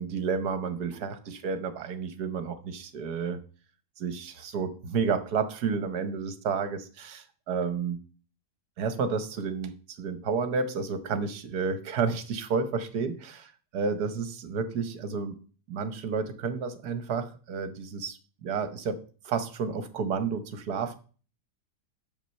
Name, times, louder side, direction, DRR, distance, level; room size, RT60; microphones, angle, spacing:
voice 1, 0.0-3.4 4.0-8.0 8.8-15.4 15.7-21.0, right 5 dB, 65° right, 10 dB, 1.6 m, -31 dB
7.4 x 6.9 x 6.5 m, 0.39 s
omnidirectional pair, 1.9 m